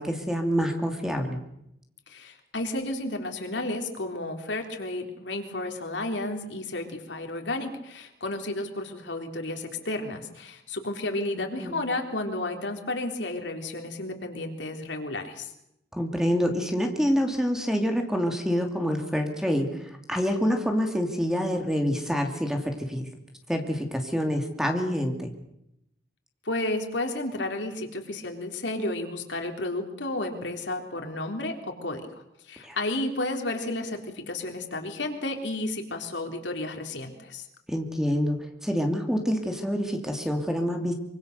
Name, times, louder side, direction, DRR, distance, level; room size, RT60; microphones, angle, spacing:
voice 1, 0.0-1.4 11.3-11.8 15.9-23.1 23.5-25.3 32.6-32.8 37.7-38.4 38.6-40.9, equal, 5° right, 4 dB, 2.7 m, -27 dB
voice 2, 2.1-15.5 26.5-31.5 31.8-37.5, left 2 dB, 85° left, 4 dB, 3.7 m, -32 dB
25.0 x 24.0 x 6.8 m, 0.80 s
head